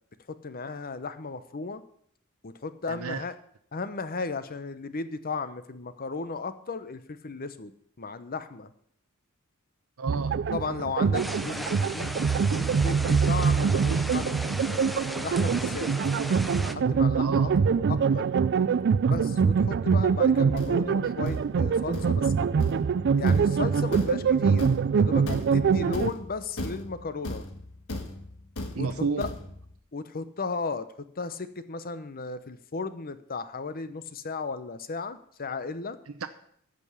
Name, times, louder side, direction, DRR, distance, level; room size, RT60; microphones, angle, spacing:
voice 1, 0.4-1.8 2.4-3.3 3.7-8.7 10.5-12.1 12.5-15.9 16.2-17.5 17.9-18.3 19.1-22.5 23.2-24.7 24.9-25.2 25.5-27.4 28.8-29.3 29.9-30.9 31.2-36.0, left 4 dB, 45° left, 12 dB, 0.8 m, -35 dB
voice 2, 2.9-3.3 10.0-10.4 17.2-17.5 28.7-29.3 36.1-36.3, right 4 dB, 80° right, 10 dB, 0.7 m, -32 dB
sound 1, 10.1-26.1, right 6 dB, 55° right, 0.4 m, -24 dB
sound 2, 11.1-16.7, equal, ahead, 0.5 m, -37 dB
Thump thud, 20.2-29.7, left 2 dB, 85° left, 1.6 m, -38 dB
14.0 x 5.4 x 8.0 m, 0.67 s
head